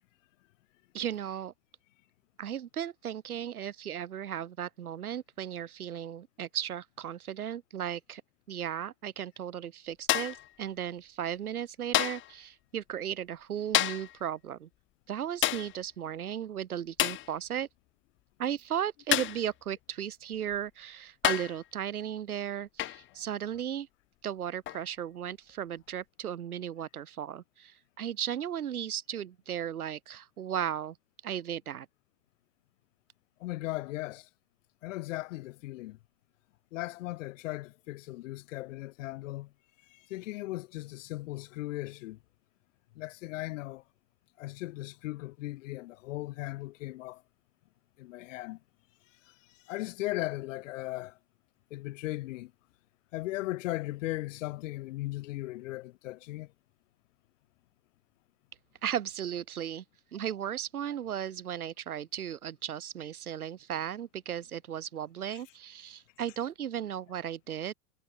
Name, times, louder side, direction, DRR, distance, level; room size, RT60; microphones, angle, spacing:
voice 1, 0.9-1.5 2.4-8.2 8.5-14.7 15.1-17.7 18.4-23.9 24.2-31.0 31.2-31.9 58.8-59.8 60.1-67.7, right 9 dB, 80° right, 4.3 m, -36 dB
sound 1, 10.1-10.5 11.9-12.3 13.7-14.2 15.4-15.8 17.0-17.3 19.1-19.5 20.5-20.6 21.2-21.6 22.8-23.1 24.7-24.9, left 14 dB, 25° left, 1.3 m, -29 dB
voice 2, 33.4-34.3 34.8-36.0 36.7-39.5 39.9-42.2 42.9-43.8 44.4-47.2 48.0-48.6 49.7-51.1 51.7-52.5 53.1-56.5 65.3-65.4, left 18 dB, 60° left, 3.0 m, -37 dB
hypercardioid pair, 115°, 43 cm